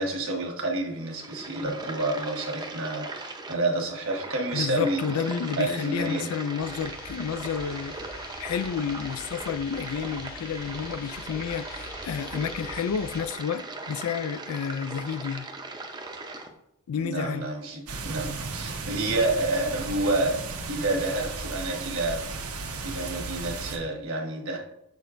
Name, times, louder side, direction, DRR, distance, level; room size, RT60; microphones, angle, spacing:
voice 1, 0.0-5.0 5.6-6.4 17.0-20.4 20.7-22.2 22.8-24.6, right 2 dB, 65° right, 1.3 m, -29 dB
sound 1, 0.9-16.5, right 3 dB, 20° right, 0.6 m, -39 dB
voice 2, 4.5-15.5 16.9-17.5, left 7 dB, 80° left, 0.3 m, -31 dB
sound 2, 6.6-13.2, left 3 dB, 45° left, 0.9 m, -44 dB
sound 3, 17.9-23.8, right 4 dB, 80° right, 0.9 m, -35 dB
6.7 x 6.2 x 2.5 m
head